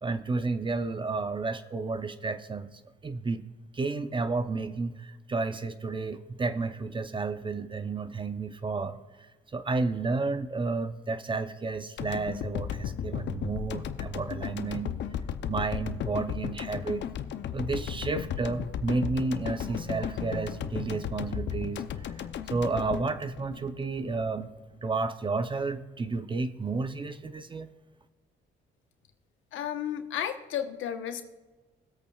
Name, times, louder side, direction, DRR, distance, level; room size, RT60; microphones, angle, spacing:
voice 1, 0.0-3.4 3.7-9.3 9.5-14.9 15.5-17.1 17.5-22.1 22.5-24.5 24.8-27.7, right 3 dB, 25° right, 11 dB, 0.7 m, -31 dB
sound 1, 12.0-24.2, left 9 dB, 65° left, 0.7 m, -35 dB
voice 2, 29.5-31.2, left 10 dB, 80° left, 7 dB, 1.1 m, -33 dB
21.0 x 8.3 x 2.4 m, 1.3 s
cardioid pair, 90°, 20 cm